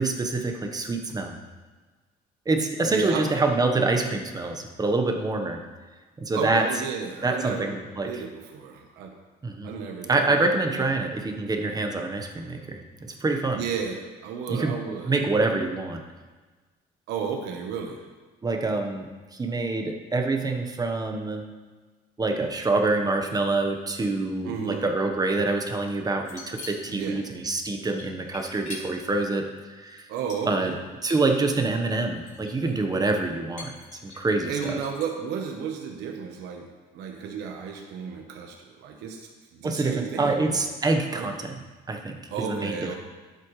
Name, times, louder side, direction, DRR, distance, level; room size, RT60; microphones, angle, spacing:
voice 1, 0.0-1.4 2.5-5.6 6.2-6.7 7.2-8.1 9.4-9.7 10.1-13.6 14.5-14.7 15.1-16.0 18.4-19.1 19.4-21.4 22.2-30.1 30.5-30.7 31.0-33.7 34.0-34.8 39.6-41.6 41.9-42.2 42.5-43.0, right 3 dB, 20° right, 4 dB, 1.2 m, -26 dB
voice 2, 2.8-3.3 6.3-7.8 8.0-9.1 9.6-10.9 13.5-15.1 17.1-18.1 24.4-24.9 26.9-27.2 30.1-30.8 34.5-36.7 36.9-40.6 41.1-41.3 42.3-43.0, right 6 dB, 85° right, 2 dB, 1.1 m, -33 dB
sound 1, 26.2-27.0 28.0-29.0 29.9-30.8 31.1-31.2 32.2-32.7 33.0-33.1 33.6-35.2, left 3 dB, 45° left, 3.4 m, -42 dB
11.5 x 7.9 x 3.2 m, 1.3 s
cardioid pair, 110°, 17 cm